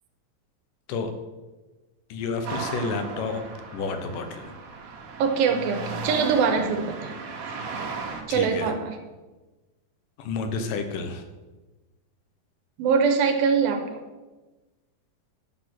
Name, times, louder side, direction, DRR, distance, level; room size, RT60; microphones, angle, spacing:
voice 1, 2.1-3.4 3.7-4.5 8.3-8.7 10.2-11.2, left 4 dB, 70° left, 7 dB, 2.4 m, -30 dB
sound 1, 2.4-8.2, right 4 dB, 65° right, 2.5 m, -36 dB
voice 2, 5.2-7.1 8.3-9.0 12.8-14.0, right 6 dB, 85° right, 5 dB, 2.6 m, -23 dB
11.5 x 6.0 x 6.0 m, 1.2 s
omnidirectional pair, 4.2 m